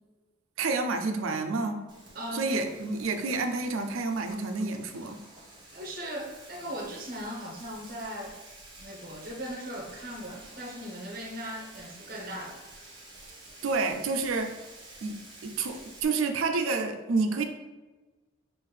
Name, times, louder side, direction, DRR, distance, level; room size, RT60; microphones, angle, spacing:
voice 1, 0.6-1.8 2.3-5.2 13.6-14.6 15.0-17.4, right 3 dB, 85° right, 6 dB, 0.4 m, -29 dB
Frying (food), 1.9-16.0, right 2 dB, 20° right, 1.1 m, -50 dB
voice 2, 2.1-2.5 5.7-8.4 8.8-12.9, equal, 45° right, 1 dB, 0.8 m, -39 dB
5.4 x 2.5 x 3.2 m, 1.2 s
head